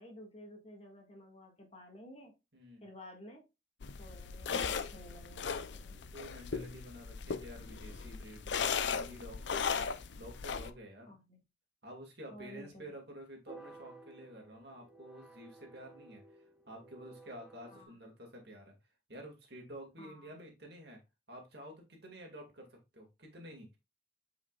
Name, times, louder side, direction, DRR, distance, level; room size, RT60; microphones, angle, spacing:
voice 1, 0.0-2.3 2.8-3.4 4.0-6.0 11.1-11.4 12.3-13.0 17.7-18.0 20.0-20.4, left 1 dB, 30° left, 1 dB, 1.9 m, -53 dB
voice 2, 2.5-2.8 5.9-11.1 11.8-16.2 16.7-18.7 19.1-21.0 21.3-23.8, equal, 55° right, 2 dB, 2.1 m, -50 dB
sound 1, 3.8-10.7, left 6 dB, 65° left, 0.5 m, -37 dB
sound 2, 13.5-17.8, right 3 dB, 5° right, 0.9 m, -55 dB
8.4 x 5.0 x 2.4 m, 0.25 s
head